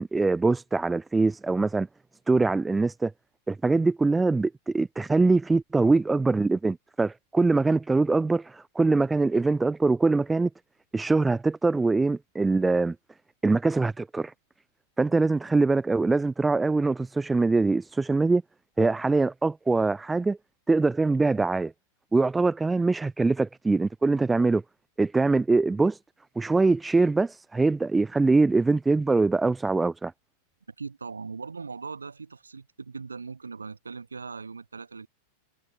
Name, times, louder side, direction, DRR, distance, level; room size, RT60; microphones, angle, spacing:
voice 1, 0.0-1.9 2.3-3.1 3.5-10.5 10.9-13.0 13.4-14.3 15.0-18.4 18.8-20.4 20.7-21.7 22.1-24.6 25.0-26.0 26.4-30.1, right 3 dB, 10° right, 0.4 m, -23 dB
voice 2, 30.8-35.1, right 4 dB, 75° right, 7.5 m, -39 dB
figure-of-eight pair, 90°, 0 cm